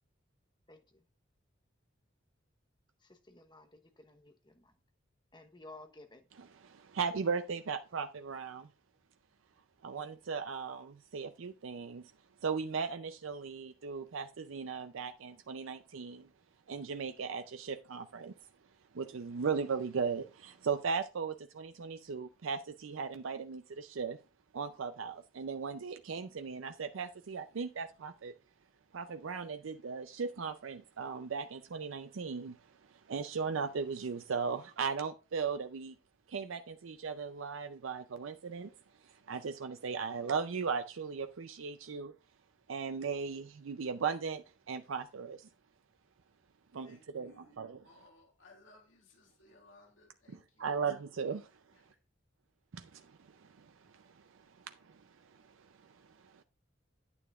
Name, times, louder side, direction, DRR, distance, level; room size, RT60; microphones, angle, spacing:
voice 1, 0.7-1.0 3.0-4.7 5.3-6.3, left 2 dB, 25° left, 1.0 m, -55 dB
voice 2, 6.6-8.7 9.8-12.0 12.4-16.3 16.7-18.3 18.9-24.2 24.5-28.3 28.9-32.6 32.9-35.9 36.3-38.7 39.0-42.1 42.7-45.5 46.7-47.8 50.3-51.5 52.7-56.4, right 5 dB, 90° right, 0.5 m, -38 dB
voice 3, 46.8-47.6 47.8-50.8, left 2 dB, 85° left, 2.3 m, -61 dB
9.6 x 9.0 x 2.4 m
head